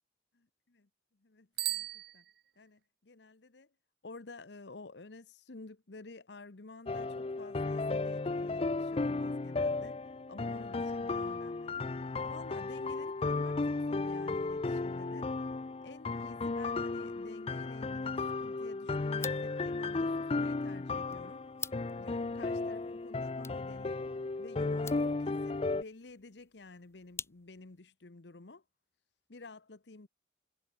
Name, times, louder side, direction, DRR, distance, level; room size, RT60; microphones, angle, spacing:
voice 1, 1.2-2.2 2.6-3.7 4.0-10.0 10.3-12.0 12.3-15.3 15.8-21.5 22.0-24.0 24.4-28.6 29.3-30.1, left 3 dB, 75° left, 1.0 m, -51 dB
Bicycle bell, 1.5-2.9, right 17 dB, 55° right, 0.5 m, -38 dB
sound 1, 6.9-25.8, left 3 dB, 30° left, 0.4 m, -34 dB
sound 2, 19.1-27.8, left 5 dB, 15° left, 1.0 m, -50 dB
head